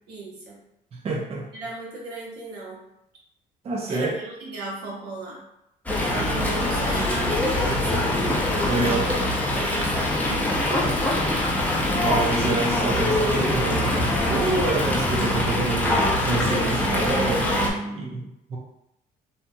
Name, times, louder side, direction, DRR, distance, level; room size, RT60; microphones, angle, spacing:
voice 1, 0.1-0.6 1.5-2.8 3.9-5.5 6.1-8.1 8.8-9.1 9.5-11.2, right 2 dB, 85° right, -4 dB, 1.0 m, -35 dB
voice 2, 0.9-1.5 3.6-4.1 8.7-9.0 12.0-18.6, right 3 dB, 35° right, -1 dB, 0.5 m, -27 dB
Fowl, 5.9-17.7, left 1 dB, 10° left, 0.6 m, -23 dB
2.8 x 2.7 x 2.2 m, 0.84 s
cardioid pair, 110°, 17 cm